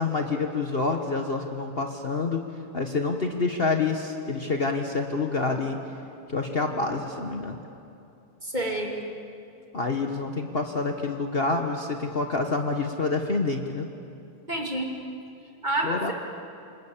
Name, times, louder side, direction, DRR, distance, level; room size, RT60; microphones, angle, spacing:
voice 1, 0.0-2.4 2.7-5.8 6.3-7.6 9.7-13.9 15.8-16.1, left 3 dB, 40° left, 4 dB, 1.4 m, -27 dB
voice 2, 8.4-9.0 14.5-14.9 15.6-16.1, right 1 dB, 30° right, 0 dB, 3.0 m, -28 dB
28.0 x 25.5 x 7.3 m, 2.7 s
omnidirectional pair, 1.7 m